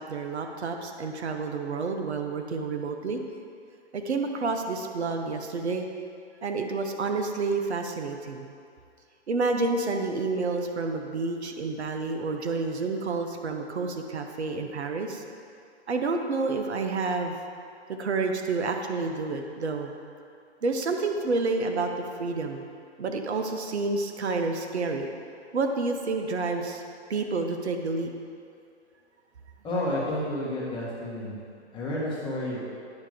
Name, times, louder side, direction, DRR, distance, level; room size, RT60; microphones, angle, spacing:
voice 1, 0.0-3.2 3.9-5.9 6.4-8.5 9.3-15.2 15.9-17.4 18.0-19.9 20.6-21.9 22.2-22.6 23.0-25.1 25.5-26.8 27.1-28.1, right 3 dB, 75° right, 4 dB, 0.8 m, -29 dB
voice 2, 29.6-31.4 31.7-32.6, left 1 dB, 15° left, -6 dB, 1.4 m, -30 dB
9.4 x 3.4 x 5.0 m, 2.4 s
figure-of-eight pair, 125°, 34 cm